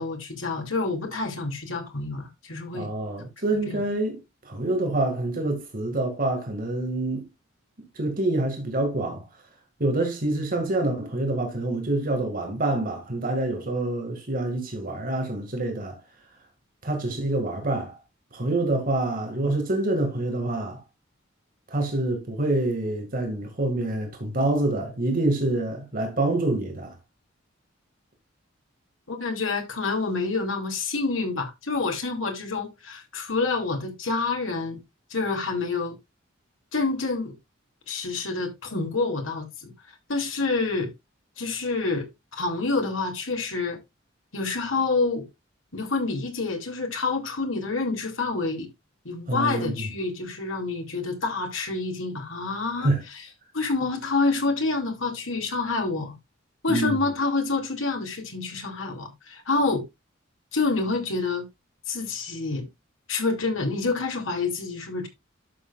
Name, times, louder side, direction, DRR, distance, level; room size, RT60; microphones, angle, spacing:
voice 1, 0.0-2.9 3.7-3.8 29.1-34.8 35.1-35.9 36.7-37.3 37.9-39.7 40.1-40.9 41.4-43.8 44.3-45.3 45.7-48.7 49.0-53.2 53.5-56.2 56.6-59.8 60.5-61.5 61.9-62.7 63.1-65.1, left 3 dB, 85° left, 2.6 m, -27 dB
voice 2, 2.7-4.2 4.5-7.2 8.0-9.2 9.8-16.0 16.8-18.0 18.3-20.8 21.7-26.9 49.3-49.9 52.8-53.0 56.7-56.9, right 2 dB, 45° right, 2.1 m, -26 dB
11.5 x 6.8 x 2.4 m
head